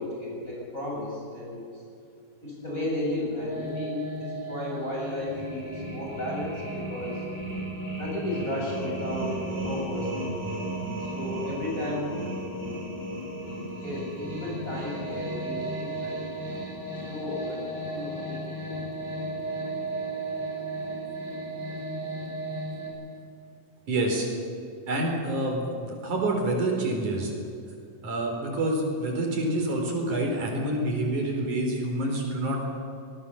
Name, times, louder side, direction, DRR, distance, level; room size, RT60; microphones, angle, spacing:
voice 1, 0.0-1.8 2.4-7.2 8.0-9.4 9.6-10.4 11.0-12.1 13.8-16.2 17.0-17.6 17.9-18.9, left 1 dB, 25° left, -4 dB, 7.4 m, -34 dB
sound 1, 3.4-22.9, right 1 dB, 10° right, 6.5 m, -34 dB
voice 2, 23.9-24.3 24.9-27.3 28.0-32.6, right 1 dB, 75° right, 1 dB, 5.9 m, -27 dB
25.0 x 20.0 x 7.2 m, 2.6 s
omnidirectional pair, 3.5 m